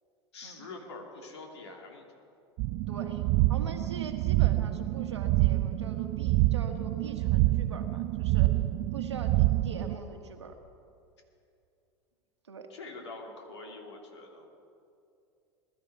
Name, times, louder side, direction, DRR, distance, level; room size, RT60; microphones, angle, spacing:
voice 1, 0.3-2.0 12.7-14.5, left 3 dB, 75° left, 2 dB, 2.6 m, -45 dB
sound 1, 2.6-9.9, right 17 dB, 50° right, 0.4 m, -27 dB
voice 2, 2.9-3.2 3.5-8.6 8.9-10.6 12.5-12.7, right 4 dB, 85° right, 6 dB, 1.5 m, -43 dB
21.0 x 12.5 x 4.7 m, 2.5 s
hypercardioid pair, 80°, 14 cm